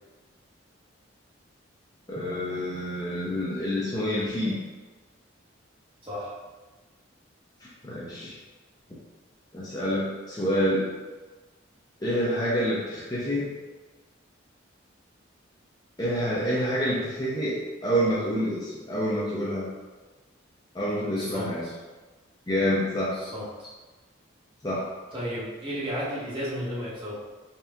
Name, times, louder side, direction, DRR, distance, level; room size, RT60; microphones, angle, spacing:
voice 1, 2.1-4.5 7.8-8.4 9.5-10.9 12.0-13.5 16.0-19.7 20.7-21.7 22.5-23.2 24.6-24.9, equal, 20° left, -7 dB, 0.6 m, -27 dB
voice 2, 6.0-6.3 21.2-21.7 23.1-23.7 25.1-27.2, equal, 25° right, -8 dB, 1.1 m, -33 dB
4.3 x 2.4 x 3.4 m, 1.3 s
head